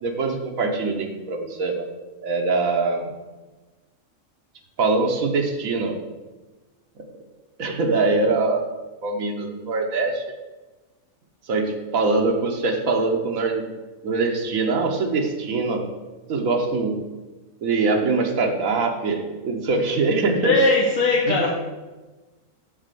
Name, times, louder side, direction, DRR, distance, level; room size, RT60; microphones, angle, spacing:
voice 1, 0.0-1.9 2.2-3.1 4.8-6.0 7.6-8.7 9.0-10.3 11.5-13.6 14.0-15.8 16.3-16.9 17.6-20.6 21.3-21.4, right 3 dB, 85° right, 2 dB, 1.3 m, -23 dB
voice 2, 20.4-21.5, left 3 dB, 75° left, -2 dB, 1.4 m, -19 dB
7.8 x 4.0 x 6.7 m, 1.2 s
omnidirectional pair, 1.4 m